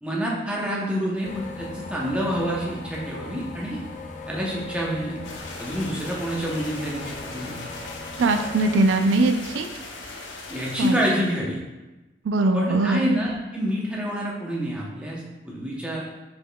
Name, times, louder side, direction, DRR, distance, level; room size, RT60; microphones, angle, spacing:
voice 1, 0.0-3.8 4.3-5.3 5.6-7.6 10.5-11.6 12.5-16.1, equal, 5° right, -4 dB, 0.7 m, -27 dB
sound 1, 1.2-8.8, left 2 dB, 40° left, 0.4 m, -38 dB
sound 2, 5.2-11.4, left 3 dB, 80° left, 0.6 m, -39 dB
voice 2, 8.2-9.7 10.8-11.0 12.3-13.1, right 2 dB, 75° right, 6 dB, 0.4 m, -21 dB
5.3 x 4.2 x 2.2 m, 1.1 s
head